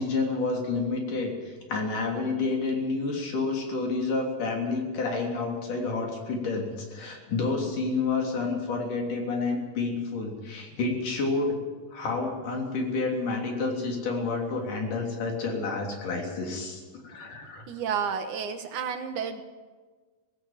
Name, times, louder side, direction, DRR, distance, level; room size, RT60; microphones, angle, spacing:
voice 1, 0.0-11.6 11.9-17.6, left 3 dB, 65° left, 1 dB, 4.8 m, -29 dB
voice 2, 17.7-19.4, right 7 dB, 70° right, 7 dB, 2.5 m, -31 dB
18.0 x 17.0 x 8.8 m, 1.4 s
omnidirectional pair, 4.0 m